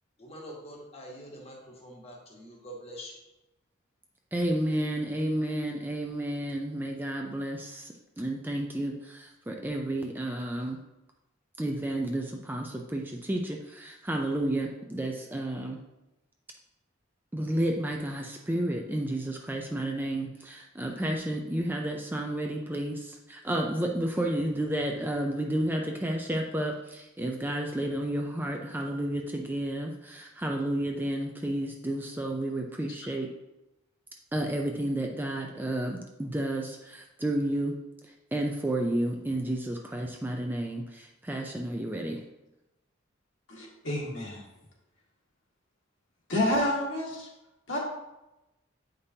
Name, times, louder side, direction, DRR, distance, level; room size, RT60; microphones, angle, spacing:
voice 1, 0.2-3.2, equal, 30° left, -1 dB, 1.3 m, -45 dB
voice 2, 4.3-10.8 11.6-15.8 17.3-33.3 34.3-37.7 38.3-42.2, right 1 dB, 10° right, 1 dB, 0.4 m, -31 dB
voice 3, 43.5-44.5 46.3-47.3 47.7-47.8, left 1 dB, 65° left, -4 dB, 1.8 m, -29 dB
8.2 x 5.2 x 2.8 m, 0.96 s
head